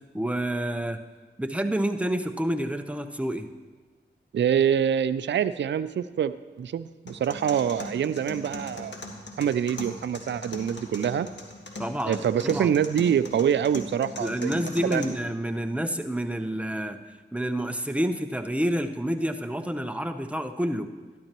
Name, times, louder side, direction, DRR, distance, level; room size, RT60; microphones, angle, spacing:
voice 1, 0.1-1.0 1.4-3.5 11.8-12.8 14.2-17.0 17.3-20.9, right 1 dB, 5° right, 7 dB, 0.8 m, -28 dB
voice 2, 4.3-8.9 9.4-11.3 12.1-15.0, right 8 dB, 70° right, 13 dB, 0.4 m, -25 dB
sound 1, 7.1-15.1, left 2 dB, 65° left, 1.5 m, -40 dB
12.5 x 12.0 x 3.0 m, 1.4 s
cardioid pair, 45°, 20 cm